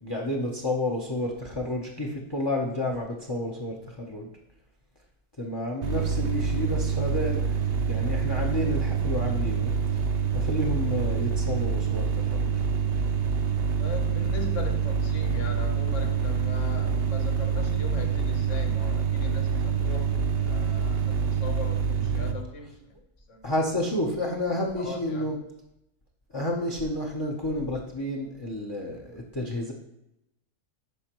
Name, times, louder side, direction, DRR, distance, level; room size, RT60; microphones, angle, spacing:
voice 1, 0.0-4.3 5.4-7.4 7.9-10.0 10.3-12.9 20.6-20.8 23.4-25.4 26.3-29.7, left 1 dB, 25° left, 0 dB, 0.6 m, -30 dB
sound 1, 5.8-22.3, right 6 dB, 55° right, 0.8 m, -26 dB
voice 2, 13.8-22.8 23.3-23.5 24.8-25.4, left 3 dB, 65° left, 4 dB, 1.3 m, -39 dB
11.0 x 4.5 x 3.0 m, 0.84 s
omnidirectional pair, 1.4 m